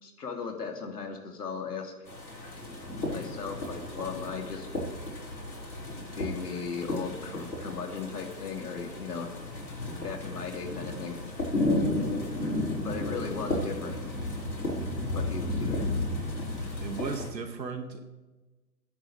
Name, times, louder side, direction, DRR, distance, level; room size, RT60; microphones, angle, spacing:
voice 1, 0.0-1.9 3.1-4.7 6.1-9.3 10.0-11.2 12.8-14.0 15.1-15.9, left 5 dB, 65° left, 3 dB, 2.9 m, -37 dB
sound 1, 2.1-17.3, left 1 dB, 90° left, 5.5 m, -33 dB
voice 2, 16.8-18.0, right 5 dB, 80° right, 6 dB, 2.1 m, -35 dB
22.5 x 10.0 x 3.4 m, 1.2 s
hypercardioid pair, 150°, 50 cm